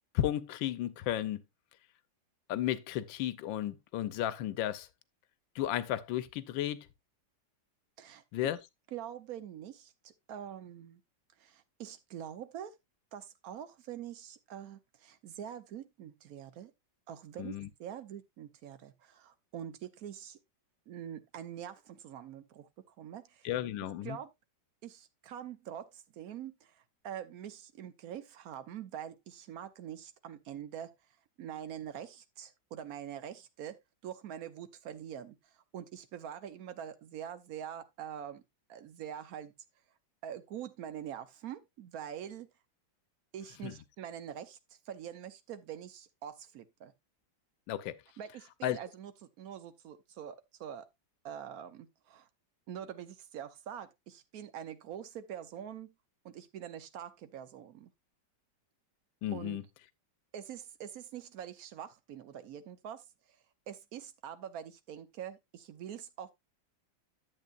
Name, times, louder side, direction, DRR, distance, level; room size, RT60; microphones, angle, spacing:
voice 1, 0.1-1.4 2.5-4.9 5.5-6.9 8.3-8.6 17.4-17.7 23.4-24.2 43.6-43.7 47.7-48.0 48.6-48.8 59.2-59.6, left 12 dB, 90° left, 1.4 m, -33 dB
voice 2, 8.0-8.5 8.9-11.0 11.4-12.7 13.1-16.7 17.1-20.4 20.9-23.5 24.0-24.3 24.8-30.9 31.4-38.4 38.7-39.5 40.2-42.5 43.3-44.6 44.8-46.9 48.2-49.1 49.4-50.9 51.2-52.3 52.7-55.9 56.2-57.9 59.3-59.6 60.3-63.0 63.7-66.3, right 9 dB, 60° right, 1.2 m, -44 dB
11.0 x 7.8 x 2.5 m
omnidirectional pair, 2.0 m